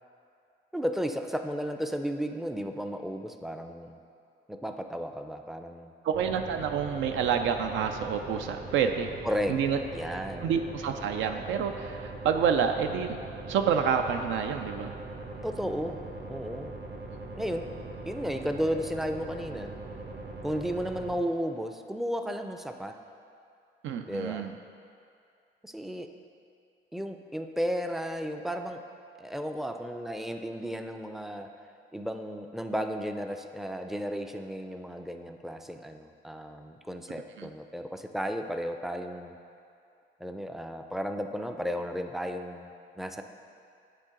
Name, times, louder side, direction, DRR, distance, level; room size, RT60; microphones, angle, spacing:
voice 1, 0.7-4.0 4.5-5.9 9.2-9.6 9.9-10.5 15.4-16.0 16.3-16.8 17.3-17.7 18.1-19.7 20.4-23.0 24.1-24.5 25.6-26.1 26.9-28.8 29.2-31.5 31.9-39.4 40.2-43.2, equal, ahead, 6 dB, 0.3 m, -34 dB
voice 2, 6.0-9.2 9.5-9.8 10.4-13.2 13.5-15.0 23.8-24.5 37.4-37.5, right 7 dB, 80° right, 6 dB, 0.4 m, -28 dB
sound 1, 6.1-21.2, right 2 dB, 55° right, 1.0 m, -41 dB
9.0 x 3.9 x 3.7 m, 2.5 s
cardioid pair, 90°, 20 cm